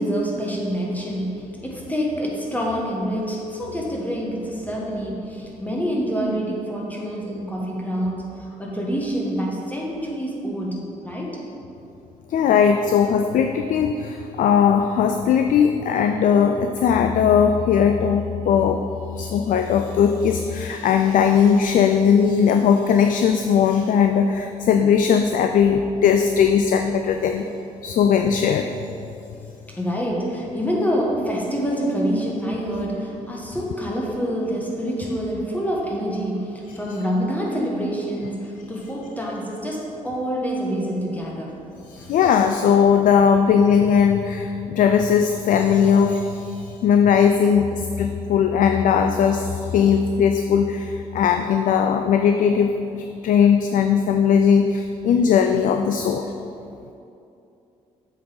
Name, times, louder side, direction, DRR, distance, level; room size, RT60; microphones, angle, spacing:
voice 1, 0.0-11.3 29.7-41.5 42.0-42.1, equal, 10° left, -3 dB, 1.5 m, -26 dB
voice 2, 12.3-18.8 19.2-27.5 27.8-28.7 41.9-56.3, left 7 dB, 50° left, 6 dB, 0.4 m, -19 dB
7.6 x 3.8 x 5.5 m, 2.7 s
figure-of-eight pair, 45°, 17 cm